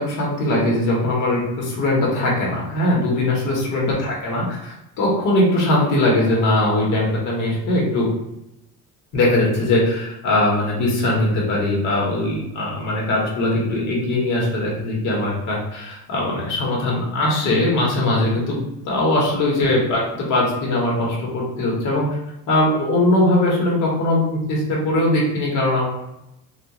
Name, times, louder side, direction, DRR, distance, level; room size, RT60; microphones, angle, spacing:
voice 1, 0.0-8.1 9.1-22.1 22.5-25.9, left 1 dB, 55° left, -3 dB, 1.0 m, -20 dB
2.3 x 2.2 x 2.8 m, 0.86 s
cardioid pair, 140°, 37 cm